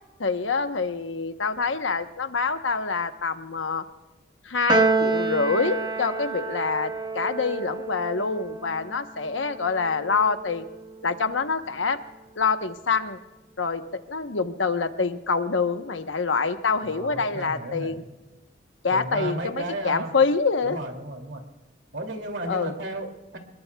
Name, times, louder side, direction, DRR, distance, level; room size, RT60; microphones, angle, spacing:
voice 1, 0.2-3.8 4.4-10.7 11.0-12.0 12.4-13.2 13.6-13.8 14.1-18.0 18.8-20.8 22.5-22.7, left 4 dB, 80° left, 8 dB, 1.0 m, -26 dB
Piano, 4.7-11.2, right 3 dB, 20° right, 1.0 m, -29 dB
voice 2, 16.8-18.0 18.9-20.1 20.6-21.4 21.9-23.4, right 1 dB, 65° right, 4 dB, 2.7 m, -33 dB
26.0 x 21.5 x 2.3 m, 1.1 s
head